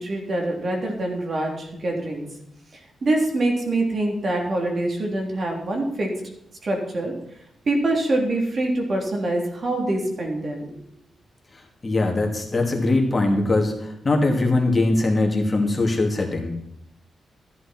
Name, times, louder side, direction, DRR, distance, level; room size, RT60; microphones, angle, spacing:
voice 1, 0.0-2.2 3.0-6.1 6.6-7.1 7.6-10.8, right 2 dB, 50° right, 1 dB, 3.4 m, -24 dB
voice 2, 11.5-16.5, left 2 dB, 30° left, 1 dB, 2.6 m, -21 dB
14.5 x 11.0 x 4.5 m, 0.74 s
cardioid pair, 100°, 0 cm